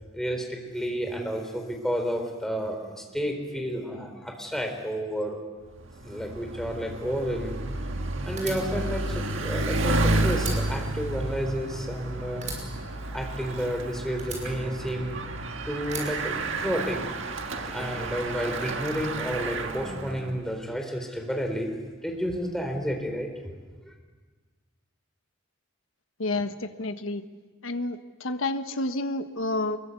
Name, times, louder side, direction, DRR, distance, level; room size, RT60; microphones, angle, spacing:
voice 1, 0.1-5.4 6.0-7.6 7.9-12.5 13.1-15.2 15.7-17.2 17.5-21.7 22.0-23.5 23.8-23.9, equal, ahead, 3 dB, 3.8 m, -31 dB
Bicycle, 5.7-20.4, right 2 dB, 65° right, 1.8 m, -31 dB
Fire, 8.4-10.0 10.3-12.0 12.4-13.7 14.2-15.3 15.8-17.0, right 4 dB, 35° right, 5.8 m, -40 dB
voice 2, 26.2-27.2 27.6-29.8, left 2 dB, 75° left, 8 dB, 1.4 m, -30 dB
24.5 x 22.0 x 8.3 m, 1.4 s
head